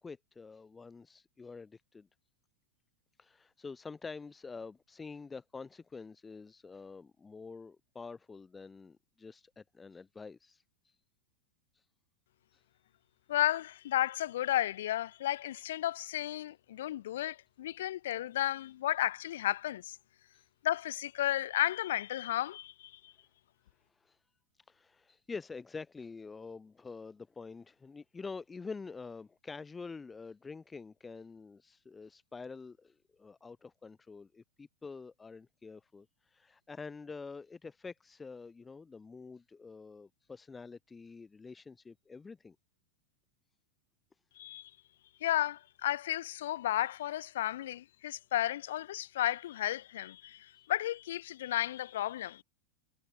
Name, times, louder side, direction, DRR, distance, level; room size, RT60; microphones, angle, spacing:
voice 1, 0.0-2.1 3.2-10.9 11.7-11.8 12.5-12.6 20.3-20.4 23.9-24.2 24.7-42.6, left 4 dB, 15° left, 2.2 m, -47 dB
voice 2, 13.3-20.0 20.6-23.1 44.4-44.7 45.2-52.4, left 13 dB, 60° left, 1.6 m, -33 dB
figure-of-eight pair, 90°, 0 cm